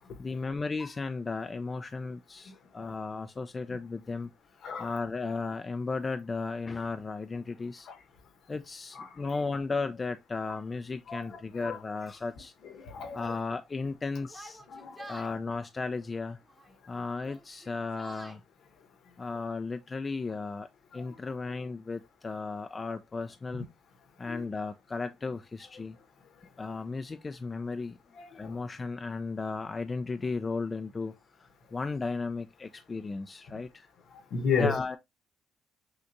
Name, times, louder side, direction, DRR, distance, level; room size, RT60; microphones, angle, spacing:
voice 1, 0.2-4.3 4.8-7.9 8.5-12.5 13.1-14.6 15.1-16.4 16.9-18.4 19.2-20.7 20.9-23.7 24.2-26.0 26.6-28.0 28.3-31.1 31.4-33.9 34.6-35.0, left 4 dB, 25° left, 0.3 m, -35 dB
voice 2, 4.6-4.9 7.9-8.0 8.9-9.2 11.1-11.8 12.6-13.3 14.7-15.2 20.9-21.2 24.3-24.4 28.1-28.6 33.5-33.6 34.1-34.8, left 5 dB, 60° left, 1.1 m, -34 dB
Yell, 14.3-15.3 16.4-16.8 17.2-18.4, right 2 dB, 15° right, 0.9 m, -48 dB
6.3 x 2.4 x 2.7 m
cardioid pair, 140°, 0 cm